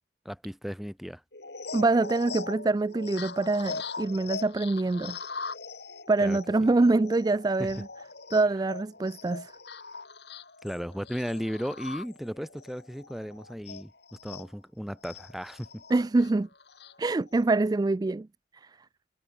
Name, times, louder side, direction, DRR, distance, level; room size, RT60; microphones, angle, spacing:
voice 1, 0.2-1.2 6.2-6.4 7.6-7.8 10.6-13.9 14.2-15.8, equal, ahead, 5.8 m, -35 dB
sound 1, 1.3-14.5 15.0-17.4, left 4 dB, 65° left, 4.8 m, -41 dB
voice 2, 1.7-5.2 6.1-7.9 8.3-9.5 15.9-16.5 17.0-18.3 18.6-18.7, right 3 dB, 20° right, 0.3 m, -25 dB
head